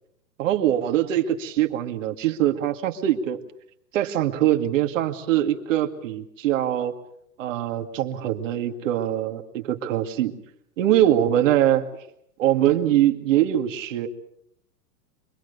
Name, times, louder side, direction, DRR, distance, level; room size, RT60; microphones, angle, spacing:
voice 1, 0.4-3.4 3.9-6.9 7.4-10.3 10.8-11.9 12.4-14.1, right 12 dB, 50° right, 4 dB, 2.4 m, -22 dB
25.5 x 21.5 x 6.8 m, 0.74 s
supercardioid pair, 170°, 49 cm